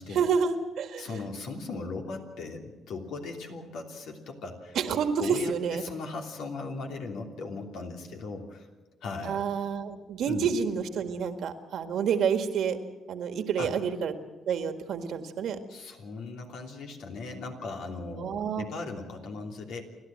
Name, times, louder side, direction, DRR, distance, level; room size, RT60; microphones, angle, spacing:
voice 1, 0.1-1.1 4.8-5.8 9.2-12.8 13.1-14.1 14.5-15.6 18.2-18.6, right 6 dB, 70° right, 7 dB, 1.8 m, -28 dB
voice 2, 1.0-4.8 5.2-8.7 9.0-9.4 10.3-10.5 13.6-13.7 15.7-19.8, left 3 dB, 80° left, 2 dB, 3.1 m, -38 dB
29.5 x 12.0 x 7.7 m, 1.2 s
cardioid pair, 90°, 0 cm